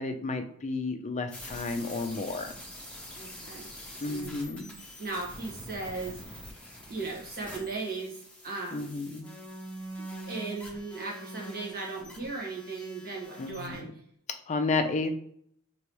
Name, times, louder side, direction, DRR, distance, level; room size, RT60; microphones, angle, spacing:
voice 1, 0.0-2.5 4.0-4.7 8.7-9.3 13.4-13.8 14.5-15.2, left 3 dB, 30° left, 6 dB, 0.4 m, -32 dB
sound 1, 1.3-13.8, equal, 5° left, 0.9 m, -45 dB
voice 2, 3.1-3.7 4.1-4.3 5.0-6.4 6.9-8.2 8.4-9.0 10.3-13.9, right 3 dB, 40° right, -4 dB, 1.4 m, -37 dB
4.8 x 3.0 x 3.0 m, 0.65 s
head